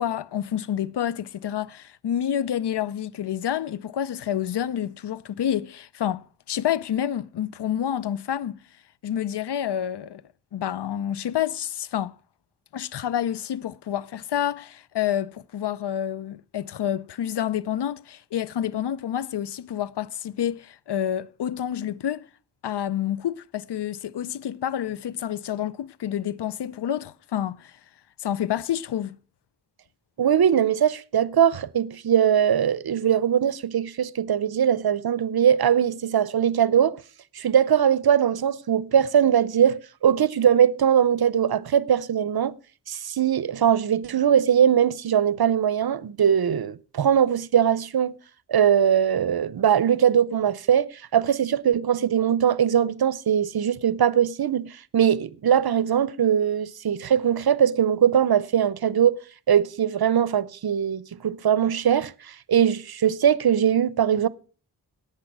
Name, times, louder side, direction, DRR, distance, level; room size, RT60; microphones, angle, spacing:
voice 1, 0.0-8.6 9.0-10.2 10.5-12.2 12.7-22.3 22.6-27.7 28.2-29.2, left 10 dB, 85° left, 0.5 m, -28 dB
voice 2, 30.2-37.0 37.3-42.5 42.9-48.1 48.5-59.2 59.5-64.3, right 9 dB, 65° right, 0.6 m, -21 dB
11.5 x 8.7 x 6.0 m
cardioid pair, 40°, 40 cm